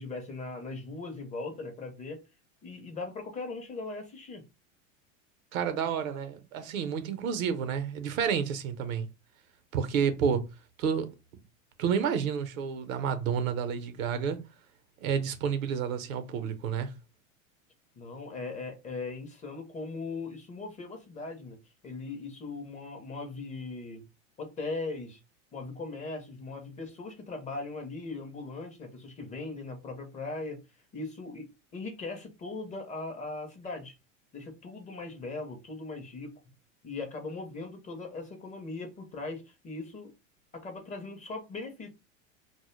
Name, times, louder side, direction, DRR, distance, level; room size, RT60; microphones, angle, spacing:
voice 1, 0.0-2.2 2.6-4.4 18.0-21.6 21.8-24.1 24.4-25.2 25.5-30.6 30.9-33.9 34.3-36.4 36.8-40.1 40.5-41.9, left 3 dB, 20° left, 0.4 m, -39 dB
voice 2, 5.5-9.1 9.7-10.5 10.8-11.1 11.8-14.4 15.0-16.9, right 7 dB, 75° right, 0.7 m, -30 dB
2.1 x 2.0 x 3.0 m
hypercardioid pair, 100°, 41 cm